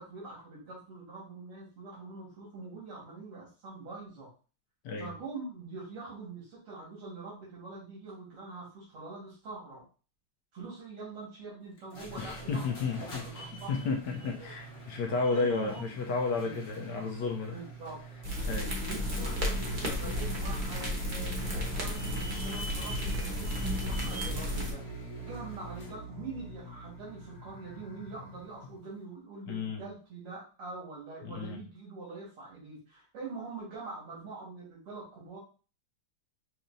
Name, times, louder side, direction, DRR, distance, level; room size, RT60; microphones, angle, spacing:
voice 1, 0.0-4.3 5.0-9.8 10.5-14.5 15.3-15.9 16.4-16.6 17.5-18.0 18.8-35.4, right 3 dB, 90° right, -5 dB, 2.6 m, -44 dB
sound 1, 11.8-26.0, right 3 dB, 45° left, 1.0 m, -45 dB
voice 2, 12.2-17.6 18.5-18.7 29.5-29.8 31.2-31.6, left 4 dB, 70° left, 2 dB, 1.1 m, -32 dB
sound 2, 18.2-24.7, equal, 35° right, 0.7 m, -33 dB
sound 3, 18.4-29.0, left 1 dB, 85° left, 1.7 m, -44 dB
5.8 x 2.7 x 2.6 m, 0.35 s
omnidirectional pair, 2.4 m